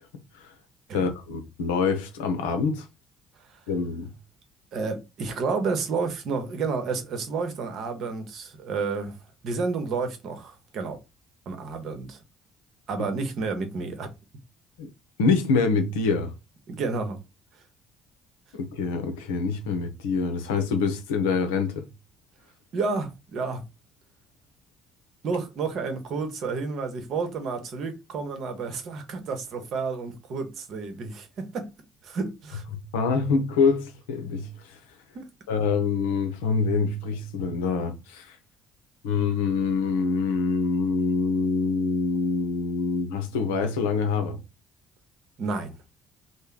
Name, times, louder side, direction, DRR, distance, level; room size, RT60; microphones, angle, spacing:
voice 1, 0.9-2.9 3.7-4.1 14.8-14.9 15.2-16.3 18.5-21.8 32.9-34.8 35.5-38.4 39.0-44.4, left 4 dB, 75° left, 0.6 m, -25 dB
voice 2, 4.7-9.2 9.4-11.0 11.5-12.2 12.9-14.1 16.7-17.2 22.7-23.6 25.2-31.7 32.0-32.6 35.1-35.3 45.4-45.7, right 4 dB, 55° right, 0.9 m, -30 dB
3.1 x 2.1 x 3.7 m
figure-of-eight pair, 50°, 0 cm